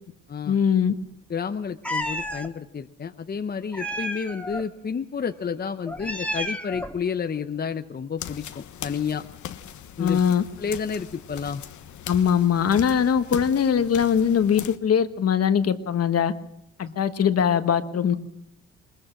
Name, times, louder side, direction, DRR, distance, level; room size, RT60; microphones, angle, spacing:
voice 1, 0.5-0.9 10.0-10.4 12.1-16.3 16.8-18.2, left 8 dB, 55° left, 10 dB, 1.4 m, -21 dB
voice 2, 1.3-9.2 10.0-10.2 10.6-11.6 16.8-17.0, left 6 dB, 30° left, 8 dB, 0.8 m, -30 dB
Meow, 1.8-2.5 3.7-4.6 5.9-7.0, equal, 5° left, 1.9 m, -31 dB
sound 1, 8.2-14.8, left 10 dB, 75° left, 1.2 m, -39 dB
21.0 x 21.0 x 6.1 m, 0.79 s
cardioid pair, 90°, 30 cm